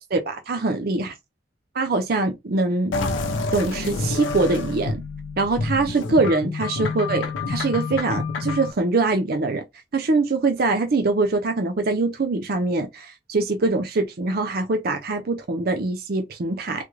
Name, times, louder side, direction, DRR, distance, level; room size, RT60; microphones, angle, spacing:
voice 1, 0.1-1.1 1.7-2.9 3.5-5.0 5.4-9.6 9.9-16.9, right 3 dB, 50° right, 0.5 m, -23 dB
sound 1, 2.9-8.7, left 3 dB, 85° left, 0.6 m, -28 dB
3.6 x 2.2 x 3.1 m
head